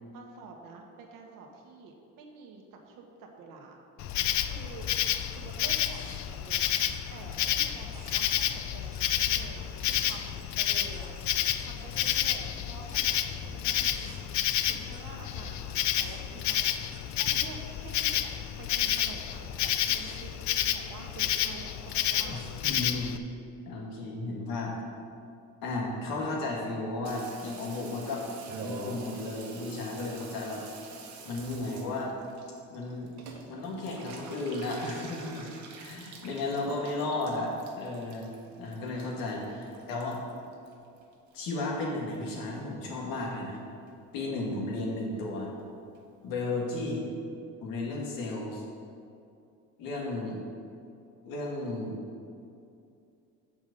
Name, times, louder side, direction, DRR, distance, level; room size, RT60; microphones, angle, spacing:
voice 1, 0.1-3.8 4.4-4.9 5.3-6.7 7.1-11.1 11.6-14.3 14.7-16.8 17.2-18.3 18.6-22.4 39.5-39.9 45.1-45.7 46.7-46.9 50.1-50.3, right 4 dB, 75° right, 1 dB, 1.4 m, -48 dB
Insect, 4.0-23.2, left 11 dB, 55° left, 0.5 m, -30 dB
sound 1, 4.4-20.4, equal, 10° right, 1.3 m, -51 dB
voice 2, 22.3-23.1 23.7-24.8 25.6-28.2 28.6-30.6 31.2-32.1 32.7-33.1 33.5-35.5 35.8-38.3 38.6-40.2 41.3-43.6 44.1-45.5 46.2-47.1 47.6-48.6 49.8-50.4 51.2-52.0, left 2 dB, 80° left, -2 dB, 2.1 m, -34 dB
Water tap faucet / Bathtub (filling or washing), 27.0-41.6 41.9-42.6 42.9-43.0 43.2-43.3 43.5-43.9 44.2-44.3 44.5-44.6 44.9-45.0 45.2-45.3 45.6-45.7 45.9-46.0 46.3-46.4 46.7-46.8, right 4 dB, 55° right, 1.4 m, -47 dB
7.2 x 5.8 x 6.7 m, 2.5 s
cardioid pair, 110°, 34 cm